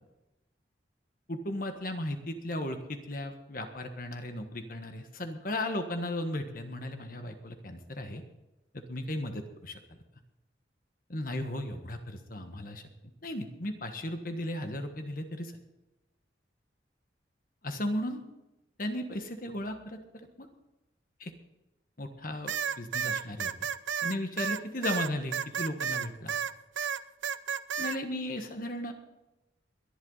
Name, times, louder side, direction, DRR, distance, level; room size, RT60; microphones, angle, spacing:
voice 1, 1.3-8.2 8.7-9.8 11.1-12.8 13.2-15.5 17.6-18.2 18.8-20.0 20.4-20.5 21.2-21.3 22.0-23.5 24.0-26.4 27.8-28.9, left 1 dB, 50° left, 6 dB, 1.5 m, -35 dB
sound 1, 22.5-26.5 26.8-28.0, right 7 dB, 90° right, 0.6 m, -32 dB
22.0 x 11.0 x 4.1 m, 0.97 s
head